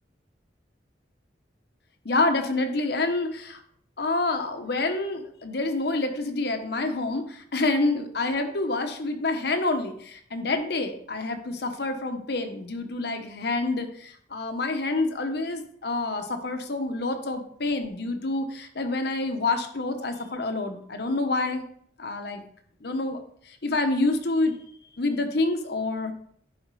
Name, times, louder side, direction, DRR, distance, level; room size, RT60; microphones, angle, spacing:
voice 1, 2.0-3.6 4.0-21.7 22.0-22.4 22.8-23.2 23.5-24.6 25.0-26.1, left 2 dB, 65° left, 6 dB, 1.0 m, -27 dB
10.5 x 4.1 x 4.8 m, 0.62 s
head